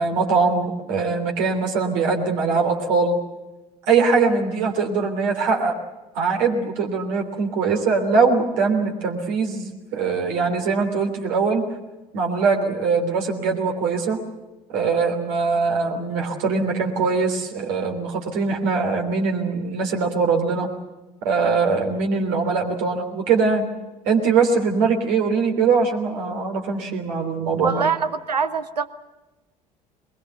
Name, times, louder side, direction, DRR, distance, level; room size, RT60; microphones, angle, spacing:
voice 1, 0.0-3.2 3.9-5.8 6.1-11.7 12.1-14.2 14.7-20.7 21.2-23.7 24.0-27.9, right 4 dB, 65° right, 2 dB, 3.3 m, -22 dB
voice 2, 27.6-28.9, right 5 dB, 90° right, 12 dB, 0.9 m, -23 dB
22.0 x 21.5 x 8.1 m, 1.1 s
figure-of-eight pair, 60°, 20 cm